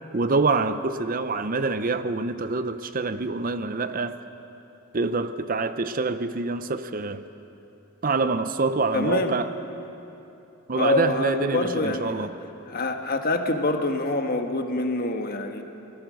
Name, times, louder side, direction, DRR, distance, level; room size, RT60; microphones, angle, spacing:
voice 1, 0.1-4.2 4.9-7.2 8.0-9.5 10.7-12.3, right 3 dB, 40° right, 11 dB, 0.6 m, -26 dB
voice 2, 8.9-9.4 10.7-12.3 12.7-15.6, left 2 dB, 40° left, 5 dB, 1.5 m, -25 dB
27.5 x 20.5 x 6.4 m, 2.9 s
head